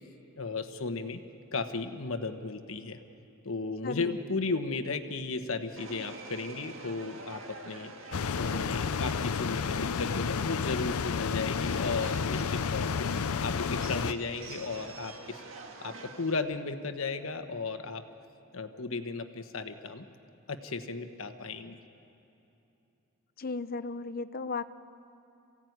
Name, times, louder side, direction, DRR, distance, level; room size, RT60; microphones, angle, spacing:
voice 1, 0.4-1.2 1.5-3.0 3.4-7.9 8.2-13.1 13.4-15.4 15.8-18.0 18.5-20.1 20.5-21.8, left 3 dB, 70° left, 7 dB, 1.3 m, -35 dB
voice 2, 3.8-4.1 23.4-24.6, left 4 dB, 45° left, 13 dB, 0.6 m, -35 dB
Subway metro underground, 5.8-16.4, right 3 dB, 70° right, 1.9 m, -47 dB
sound 1, 8.1-14.1, left 6 dB, 90° left, 0.5 m, -31 dB
27.5 x 16.5 x 9.4 m, 2.9 s
head